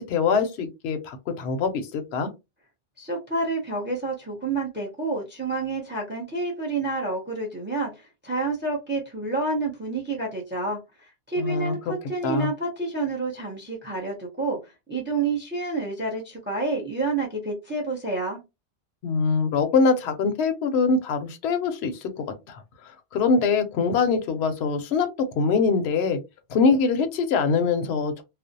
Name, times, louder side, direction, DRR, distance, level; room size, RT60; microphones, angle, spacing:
voice 1, 0.0-2.3 11.4-11.7 12.2-12.5 19.0-22.6 23.1-25.1 25.4-26.2 26.5-28.2, left 4 dB, 70° left, 0.8 m, -23 dB
voice 2, 3.0-10.8 11.3-18.4, right 3 dB, 15° right, 0.5 m, -29 dB
2.5 x 2.0 x 2.6 m
omnidirectional pair, 1.2 m